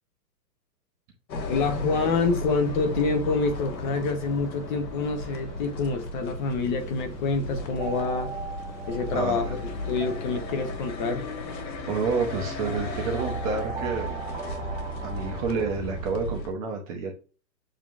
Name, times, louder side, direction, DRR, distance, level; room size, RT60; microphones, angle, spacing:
sound 1, 1.3-16.5, left 1 dB, 90° left, 1.5 m, -35 dB
sound 2, 1.4-10.9, equal, 5° left, 1.7 m, -45 dB
voice 1, 1.5-8.3 8.9-11.3, left 4 dB, 30° left, 0.8 m, -27 dB
sound 3, 7.6-15.8, right 5 dB, 40° right, 1.0 m, -40 dB
voice 2, 9.1-9.5 11.9-14.2 15.0-17.1, right 4 dB, 20° right, 0.7 m, -29 dB
7.3 x 3.0 x 2.4 m
hypercardioid pair, 145°, 50 cm